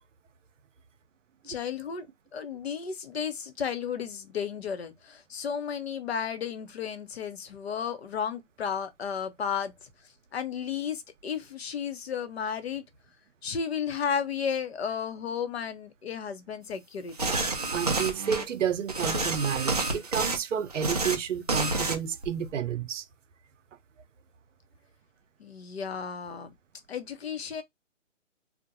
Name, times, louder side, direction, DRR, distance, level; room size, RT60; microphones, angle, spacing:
voice 1, 1.4-2.1 2.3-9.9 10.3-12.8 13.4-17.3 25.4-26.5 26.9-27.6, left 7 dB, 55° left, 0.6 m, -33 dB
sound 1, 17.2-18.4 18.9-20.4 20.7-21.2 21.5-22.0 22.2-22.5, right 3 dB, 35° right, 0.4 m, -29 dB
voice 2, 17.7-23.0, right 7 dB, 75° right, 0.6 m, -30 dB
2.6 x 2.1 x 2.7 m
hypercardioid pair, 165°, 38 cm